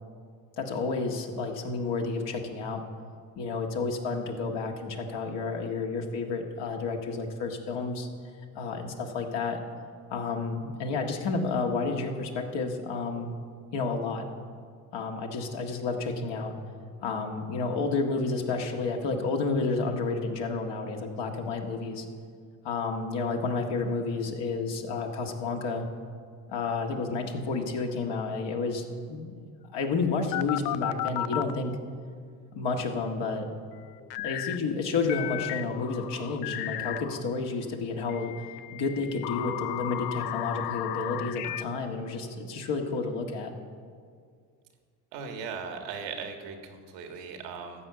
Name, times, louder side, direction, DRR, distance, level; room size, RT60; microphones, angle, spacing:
voice 1, 0.6-2.8 3.4-8.1 8.5-9.6 10.1-13.3 13.7-14.2 14.9-16.6 17.0-22.1 22.6-25.9 26.5-29.3 29.7-31.8 32.5-33.5 34.2-38.3 38.7-43.5, left 4 dB, 60° left, 2 dB, 1.8 m, -30 dB
sound 1, 30.3-31.5 34.1-34.6 35.1-37.2 38.1-41.6, left 14 dB, 85° left, 0.6 m, -34 dB
voice 2, 45.1-47.9, right 5 dB, 80° right, 4 dB, 1.7 m, -38 dB
13.5 x 5.6 x 8.1 m, 2.1 s
hypercardioid pair, 65°, 48 cm